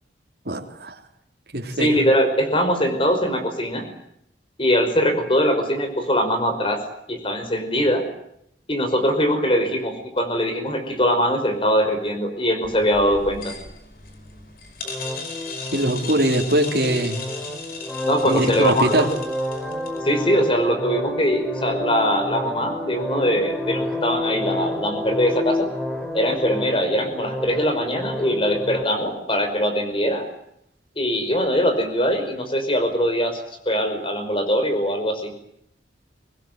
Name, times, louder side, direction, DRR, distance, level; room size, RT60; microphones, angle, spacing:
voice 1, 0.4-0.9 1.5-2.0 15.7-17.2 18.2-19.1, right 1 dB, 65° right, 2 dB, 3.3 m, -22 dB
voice 2, 1.8-3.9 4.6-6.8 7.1-8.0 8.7-13.5 18.0-19.1 20.0-25.7 26.1-30.3 31.0-33.4 33.7-35.3, equal, 30° left, 7 dB, 5.4 m, -22 dB
sound 1, 12.6-20.1, left 4 dB, 55° left, 5.3 m, -37 dB
sound 2, 14.8-28.8, left 1 dB, ahead, 3.6 m, -29 dB
24.5 x 20.0 x 9.4 m, 0.73 s
head